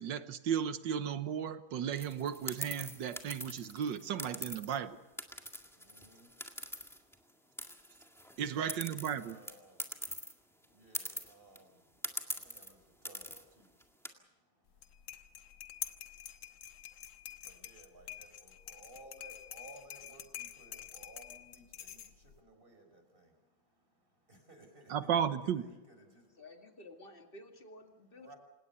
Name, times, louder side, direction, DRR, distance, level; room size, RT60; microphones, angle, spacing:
voice 1, 0.0-5.0 8.4-9.4 24.9-25.6, right 8 dB, 70° right, 12 dB, 1.7 m, -34 dB
sound 1, 1.9-4.8 5.2-7.3 7.6-10.3 10.6-10.7 10.9-11.6 12.0-12.7 13.0-13.4 13.8-14.1, equal, ahead, 1.7 m, -42 dB
voice 2, 5.3-8.4 9.1-25.1 25.4-26.4 28.1-28.4, right 2 dB, 25° right, 5 dB, 4.7 m, -60 dB
sound 2, 14.7-22.4, left 10 dB, 90° left, 1.9 m, -47 dB
voice 3, 26.4-28.3, left 1 dB, 30° left, 4 dB, 2.4 m, -53 dB
28.0 x 17.5 x 6.9 m, 1.0 s
omnidirectional pair, 2.1 m